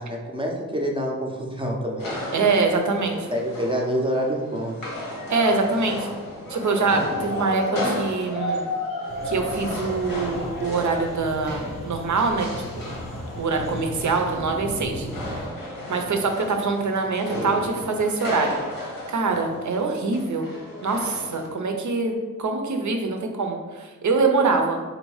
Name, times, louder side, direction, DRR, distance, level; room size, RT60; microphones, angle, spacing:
voice 1, 0.0-2.1 3.3-4.8, equal, 15° right, -1 dB, 0.6 m, -27 dB
sound 1, 2.0-21.5, left 1 dB, 90° left, 1.2 m, -33 dB
voice 2, 2.3-3.2 5.3-6.1 6.5-8.7 9.2-12.5 13.4-15.1 15.9-18.6 19.1-20.5 20.8-22.1 22.4-24.8, right 4 dB, 60° right, 4 dB, 0.6 m, -24 dB
sound 2, 9.1-15.5, equal, 20° left, 0.7 m, -36 dB
3.8 x 2.7 x 4.7 m, 1.4 s
wide cardioid pair, 130°, 34 cm